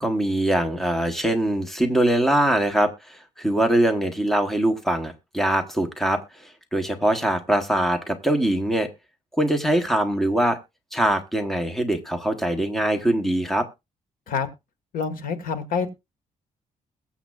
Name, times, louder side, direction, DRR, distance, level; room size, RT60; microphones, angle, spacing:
voice 1, 0.0-8.9 9.3-10.6 10.9-13.7, right 1 dB, ahead, 7 dB, 1.0 m, -23 dB
voice 2, 14.9-15.9, left 5 dB, 85° left, 10 dB, 1.6 m, -27 dB
21.5 x 7.2 x 2.4 m, 0.24 s
wide cardioid pair, 175°, 14 cm